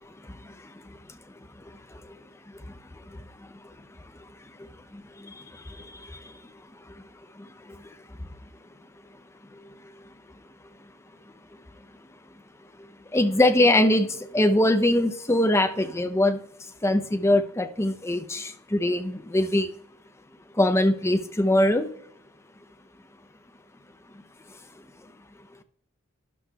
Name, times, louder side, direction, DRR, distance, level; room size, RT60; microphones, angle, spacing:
voice 1, 0.2-1.0 1.3-1.4 1.9-2.0 2.5-2.8 3.1-3.7 4.6-6.5 6.9-7.0 7.3-7.9 13.1-19.7 20.5-21.9, left 1 dB, 15° left, 0.5 m, -24 dB
12.5 x 11.0 x 2.3 m
head